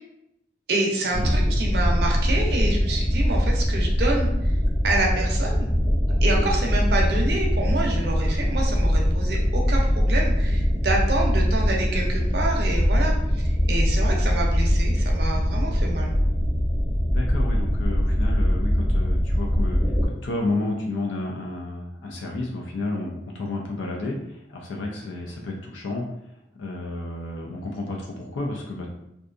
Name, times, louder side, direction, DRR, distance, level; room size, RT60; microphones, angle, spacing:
voice 1, 0.7-4.3 4.8-5.7 6.2-16.2, right 2 dB, 60° right, -1 dB, 0.5 m, -27 dB
sound 1, 1.1-20.1, equal, 25° left, 0.5 m, -22 dB
voice 2, 17.1-26.1 26.6-28.9, left 2 dB, 85° left, 0 dB, 0.4 m, -31 dB
2.6 x 2.2 x 2.4 m, 0.83 s
head